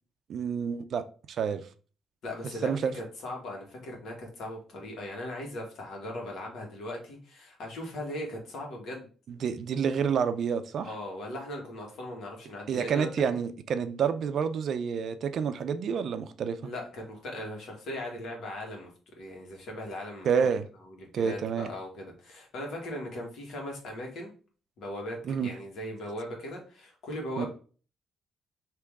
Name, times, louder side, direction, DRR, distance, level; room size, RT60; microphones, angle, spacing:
voice 1, 0.3-1.0 1.4-1.6 2.6-2.9 9.3-10.9 12.7-16.6 20.2-20.6 21.1-21.7 25.3-25.5 27.4-27.5, right 7 dB, 65° right, 0.4 m, -28 dB
voice 2, 2.2-9.1 10.8-13.1 16.6-18.9 19.1-20.3 20.8-24.3 24.8-27.5, left 1 dB, 70° left, 1.6 m, -39 dB
3.5 x 3.0 x 4.6 m
cardioid pair, 90°, 0 cm